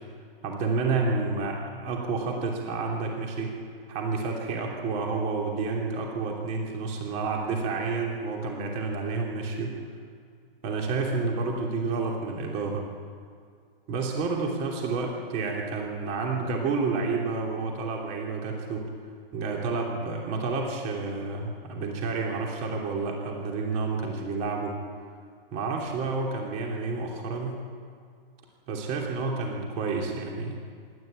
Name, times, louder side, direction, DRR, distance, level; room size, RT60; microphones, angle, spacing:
voice 1, 0.4-3.5 3.9-9.8 10.6-12.8 13.9-18.8 19.3-24.8 25.5-27.6 28.7-30.6, right 4 dB, 25° right, 0 dB, 3.0 m, -30 dB
25.5 x 13.0 x 8.8 m, 2.2 s
hypercardioid pair, 160°, 30 cm